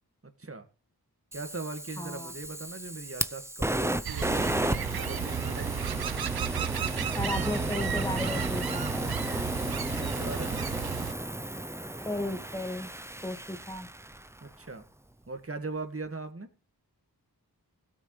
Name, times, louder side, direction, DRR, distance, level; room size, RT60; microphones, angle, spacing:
Fire, 1.3-14.4, right 1 dB, 5° right, 0.5 m, -33 dB
voice 1, 1.3-4.4 4.9-5.7 10.0-10.7 14.4-14.8 15.3-16.5, right 3 dB, 35° right, 7 dB, 1.8 m, -39 dB
voice 2, 2.0-2.3 7.1-9.2 12.0-12.9 13.2-13.9, left 1 dB, 10° left, 7 dB, 1.6 m, -35 dB
sound 1, 4.0-11.1, right 9 dB, 70° right, 0.6 m, -34 dB
16.5 x 8.9 x 3.2 m, 0.37 s
wide cardioid pair, 65°, 38 cm